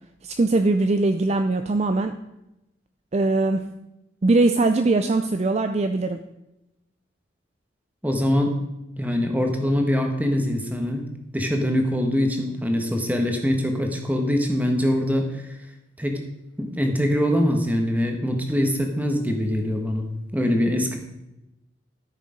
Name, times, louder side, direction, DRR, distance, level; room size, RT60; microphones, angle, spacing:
voice 1, 0.2-2.2 3.1-3.6 4.2-6.2, right 2 dB, 35° right, 8 dB, 0.4 m, -21 dB
voice 2, 8.0-8.5 9.0-11.1 11.3-15.4 16.0-16.2 16.6-20.1 20.3-21.0, equal, 10° right, 3 dB, 1.3 m, -23 dB
13.0 x 6.7 x 5.0 m, 0.92 s
head